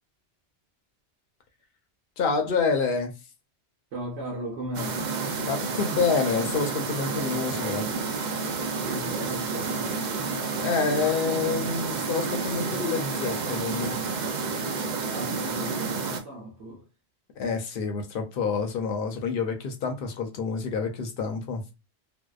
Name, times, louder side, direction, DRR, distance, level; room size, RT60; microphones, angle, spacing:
voice 1, 2.2-3.1 5.4-7.9 10.6-13.9 17.4-21.6, left 5 dB, 65° left, 0.7 m, -28 dB
voice 2, 3.9-5.1 8.8-10.0 15.0-16.9, right 1 dB, 80° right, 0.9 m, -36 dB
sound 1, 4.7-16.2, right 4 dB, 60° right, 0.5 m, -30 dB
2.7 x 2.0 x 2.3 m
omnidirectional pair, 1.1 m